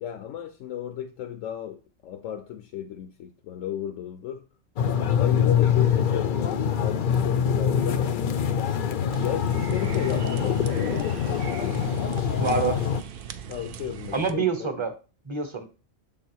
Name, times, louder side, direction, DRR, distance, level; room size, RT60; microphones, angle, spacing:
voice 1, 0.0-4.4 5.2-8.2 9.2-11.9 13.5-14.7, left 10 dB, 80° left, 1.0 m, -34 dB
sound 1, 4.8-13.0, left 8 dB, 60° left, 0.5 m, -24 dB
sound 2, 9.1-14.3, right 8 dB, 60° right, 0.5 m, -40 dB
voice 2, 12.4-12.8 14.1-14.9 15.2-15.7, right 5 dB, 30° right, 0.7 m, -26 dB
7.4 x 3.7 x 4.5 m
omnidirectional pair, 1.3 m